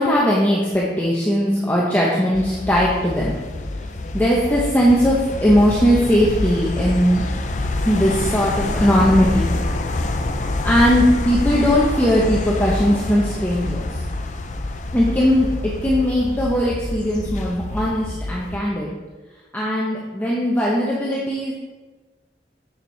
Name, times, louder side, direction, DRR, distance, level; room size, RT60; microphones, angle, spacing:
voice 1, 0.0-3.4 4.1-7.2 7.8-9.5 10.6-13.9 14.9-18.9 19.5-21.5, equal, 10° left, -5 dB, 0.9 m, -19 dB
sound 1, 2.3-18.6, left 2 dB, 40° left, 0.5 m, -26 dB
7.3 x 6.7 x 4.4 m, 1.2 s
head